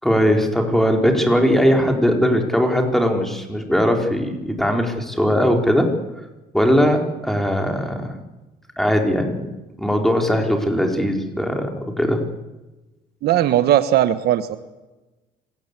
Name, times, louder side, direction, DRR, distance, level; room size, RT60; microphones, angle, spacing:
voice 1, 0.0-5.9 6.5-8.1 8.8-9.5 9.8-12.2, equal, ahead, 3 dB, 4.6 m, -19 dB
voice 2, 13.2-14.6, right 12 dB, 70° right, 11 dB, 1.4 m, -18 dB
27.0 x 18.0 x 8.4 m, 1.1 s
cardioid pair, 110°, 17 cm